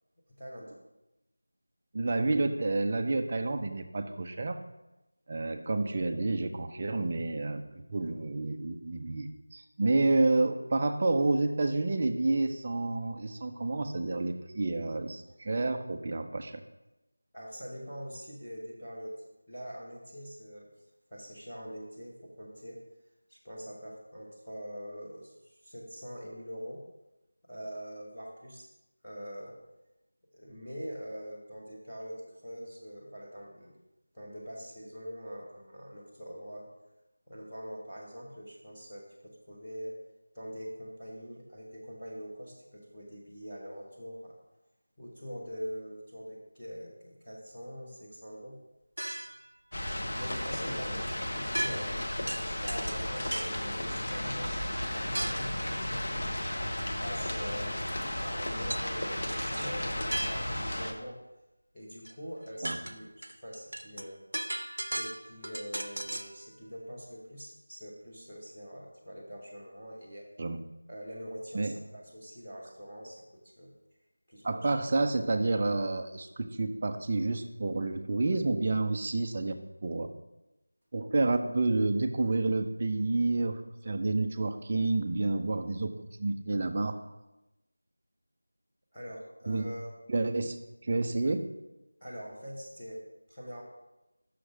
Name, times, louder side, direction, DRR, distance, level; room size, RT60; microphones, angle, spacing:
voice 1, 0.4-0.7 17.3-20.7 21.1-22.8 23.3-26.9 27.4-28.7 29.0-29.6 30.3-33.8 34.1-36.7 37.3-40.0 40.3-44.4 45.0-48.6 50.1-52.0 52.4-56.4 56.8-61.2 61.7-64.2 64.9-70.3 70.9-73.7 74.3-74.9 88.9-89.9 92.0-93.6, equal, 5° left, -14 dB, 0.7 m, -44 dB
voice 2, 1.9-4.6 5.3-16.6 62.6-62.8 70.4-70.6 71.5-71.7 74.4-80.1 80.9-87.0 89.5-89.7 90.1-91.5, right 2 dB, 15° right, 7 dB, 0.3 m, -29 dB
sound 1, 49.0-49.5 51.5-52.0 52.3-53.6 55.2-55.6 58.7-58.9 59.3-60.7 62.1-62.2 62.5-66.4, right 1 dB, 70° right, 0.5 m, -37 dB
sound 2, 49.7-60.9, left 1 dB, 35° left, 0.8 m, -34 dB
6.2 x 4.9 x 6.1 m, 0.96 s
figure-of-eight pair, 180°, 0 cm